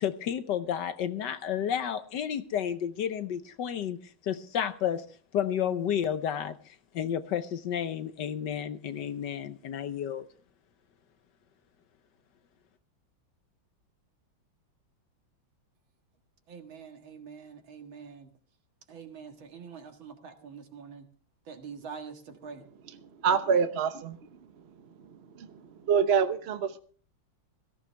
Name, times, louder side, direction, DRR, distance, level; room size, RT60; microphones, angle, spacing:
voice 1, 0.0-4.0 4.2-5.0 5.3-6.6 6.9-10.2, left 9 dB, 65° left, 11 dB, 1.4 m, -31 dB
voice 2, 16.5-18.3 18.9-21.1 21.5-22.6, right 6 dB, 80° right, 4 dB, 2.5 m, -45 dB
voice 3, 23.2-24.2 25.4-25.5 25.8-26.8, right 6 dB, 50° right, 9 dB, 0.8 m, -25 dB
17.0 x 14.5 x 3.4 m, 0.43 s
omnidirectional pair, 2.2 m